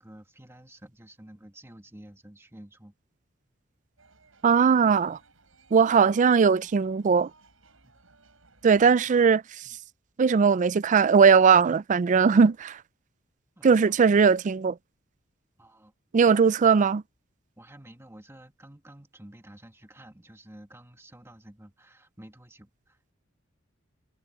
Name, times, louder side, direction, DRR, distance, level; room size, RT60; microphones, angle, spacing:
voice 1, 0.0-2.9 7.8-8.0 8.8-9.3 9.6-9.8 13.6-14.0 15.6-15.9 17.6-23.1, right 1 dB, 15° right, 2.1 m, -50 dB
sound 1, 4.0-9.0, right 3 dB, 85° right, 5.4 m, -60 dB
voice 2, 4.4-5.2 5.7-7.3 8.6-9.6 10.2-12.8 13.6-14.8 16.1-17.0, right 6 dB, 40° right, 0.4 m, -19 dB
head